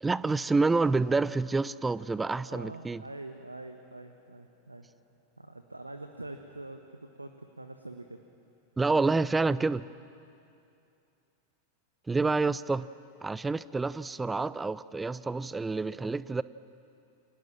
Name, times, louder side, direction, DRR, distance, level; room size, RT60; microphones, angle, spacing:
voice 1, 0.0-3.0 8.8-9.8 12.1-12.9 13.2-16.4, right 3 dB, 10° right, 18 dB, 0.6 m, -28 dB
voice 2, 2.5-4.9 5.4-8.2, right 2 dB, 85° right, 7 dB, 1.3 m, -44 dB
29.5 x 27.0 x 7.4 m, 2.6 s
figure-of-eight pair, 90°, 0 cm